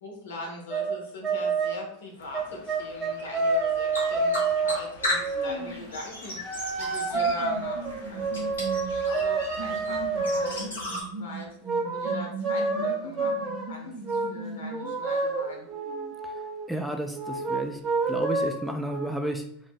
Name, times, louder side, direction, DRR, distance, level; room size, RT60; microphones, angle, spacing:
voice 1, 0.0-8.5 8.9-11.5 11.9-15.6, left 2 dB, 70° left, 0 dB, 0.9 m, -42 dB
sound 1, 0.7-1.0 1.2-1.8 2.3-5.7 6.4-10.6 11.7-13.7 14.1-14.4 14.7-16.7 17.1-19.2, right 3 dB, 25° right, 0.7 m, -28 dB
sound 2, 2.2-11.0, left 2 dB, 85° left, 1.2 m, -37 dB
sound 3, 5.2-6.1 6.9-14.9 15.2-16.1, right 2 dB, 75° right, 0.6 m, -39 dB
voice 2, 16.7-17.8 18.1-19.4, right 1 dB, ahead, 3 dB, 0.3 m, -31 dB
2.6 x 2.0 x 3.8 m, 0.71 s
figure-of-eight pair, 90°, 0 cm